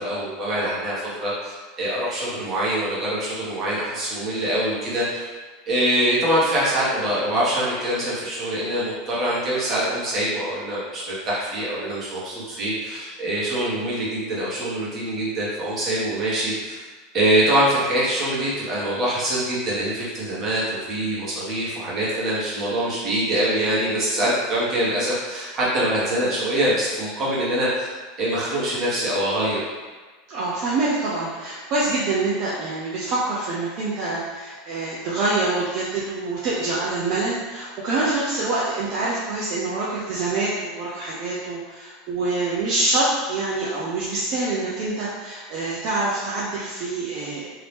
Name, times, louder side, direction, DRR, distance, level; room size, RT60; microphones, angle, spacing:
voice 1, 0.0-5.3 5.7-16.8 17.1-27.9 28.2-29.6, right 1 dB, 30° right, -8 dB, 1.3 m, -24 dB
voice 2, 30.3-47.5, right 2 dB, 50° right, -7 dB, 0.7 m, -25 dB
2.8 x 2.7 x 3.5 m, 1.4 s
supercardioid pair, 135°, 0 cm